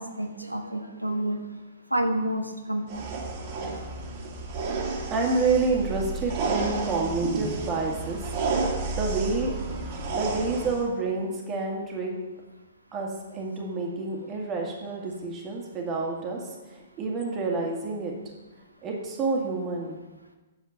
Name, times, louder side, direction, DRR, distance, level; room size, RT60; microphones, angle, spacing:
voice 1, 0.0-1.4 1.9-3.2, right 1 dB, 85° right, 5 dB, 1.2 m, -29 dB
sound 1, 2.9-10.8, right 3 dB, 35° right, 2.0 m, -31 dB
voice 2, 5.1-9.6 10.1-12.2 12.9-18.2 18.8-20.0, right 3 dB, 20° right, 0 dB, 2.0 m, -29 dB
8.1 x 7.1 x 6.7 m, 1.2 s
figure-of-eight pair, 115°, 0 cm